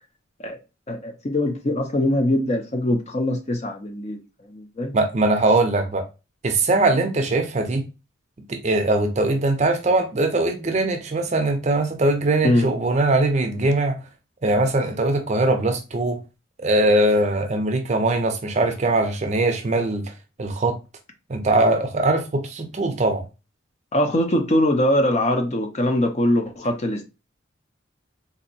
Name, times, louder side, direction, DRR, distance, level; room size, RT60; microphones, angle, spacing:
voice 1, 0.9-4.2 4.5-4.9 12.4-12.7 23.9-27.0, left 1 dB, 35° left, 0.5 m, -22 dB
voice 2, 4.9-6.0 6.4-7.8 8.5-14.0 14.4-16.2 16.6-20.1 20.4-20.8 21.3-23.2, right 2 dB, 35° right, 0.5 m, -21 dB
3.9 x 2.6 x 2.6 m
head